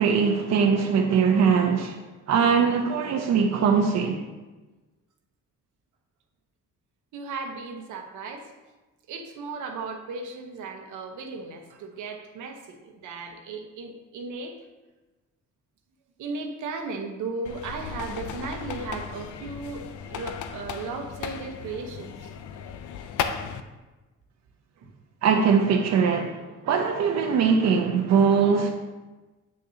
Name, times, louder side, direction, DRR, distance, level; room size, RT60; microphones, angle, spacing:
voice 1, 0.0-2.0 2.3-4.2 25.2-28.7, right 6 dB, 60° right, 2 dB, 0.8 m, -21 dB
voice 2, 7.1-8.5 9.1-14.6 16.2-22.3 24.8-24.9, right 4 dB, 80° right, 4 dB, 1.1 m, -36 dB
sound 1, 17.4-23.6, left 7 dB, 80° left, 0.6 m, -35 dB
8.4 x 6.5 x 2.8 m, 1.2 s
cardioid pair, 90°, 30 cm